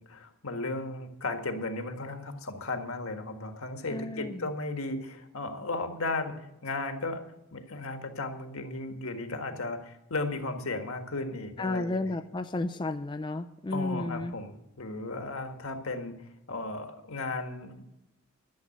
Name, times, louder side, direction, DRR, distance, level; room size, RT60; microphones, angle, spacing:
voice 1, 0.0-7.2 7.5-12.0 13.7-17.8, left 2 dB, 75° left, 6 dB, 1.7 m, -35 dB
voice 2, 3.9-4.4 11.6-14.3, left 2 dB, 20° left, 9 dB, 0.4 m, -32 dB
12.0 x 7.6 x 9.1 m, 0.91 s
head